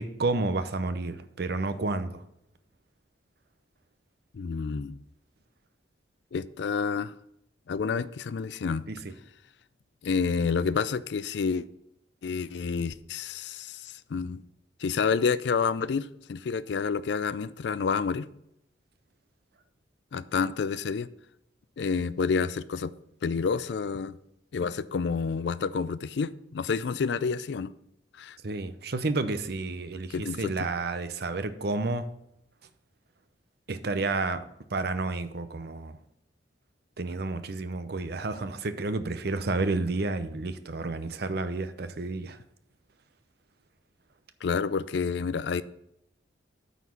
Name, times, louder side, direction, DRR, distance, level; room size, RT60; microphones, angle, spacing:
voice 1, 0.0-2.2 8.9-9.1 28.4-32.1 33.7-34.4 34.7-36.0 37.0-42.4, right 3 dB, 60° right, 0.7 m, -30 dB
voice 2, 4.3-5.0 6.3-7.1 7.7-8.8 10.0-11.6 12.2-14.4 14.8-18.3 20.1-21.1 21.8-22.9 23.2-24.2 24.5-27.7 28.2-28.4 30.1-30.7 44.4-45.6, left 5 dB, 70° left, 0.4 m, -29 dB
9.1 x 4.1 x 7.1 m
head